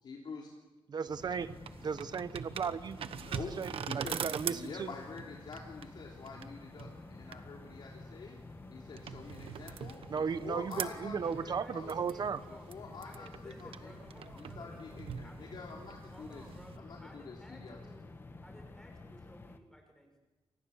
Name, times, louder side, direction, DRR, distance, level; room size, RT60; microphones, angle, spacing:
voice 1, 0.0-0.5 3.1-3.5 3.8-8.4 8.7-11.2 11.4-11.9 12.5-13.9 14.4-16.4 16.8-17.8, left 4 dB, 60° left, -1 dB, 3.6 m, -47 dB
voice 2, 0.9-1.5 1.8-3.0 3.6-4.9 10.1-12.4, right 6 dB, 50° right, 12 dB, 1.1 m, -35 dB
sound 1, 1.1-16.8, right 8 dB, 90° right, 1.2 m, -44 dB
sound 2, 1.2-19.6, left 2 dB, 25° left, 1.7 m, -51 dB
voice 3, 11.2-12.7 13.0-15.5 16.1-18.1 18.4-20.2, left 1 dB, 5° left, 2 dB, 6.1 m, -56 dB
29.5 x 26.0 x 7.3 m, 1.1 s
wide cardioid pair, 170°, 9 cm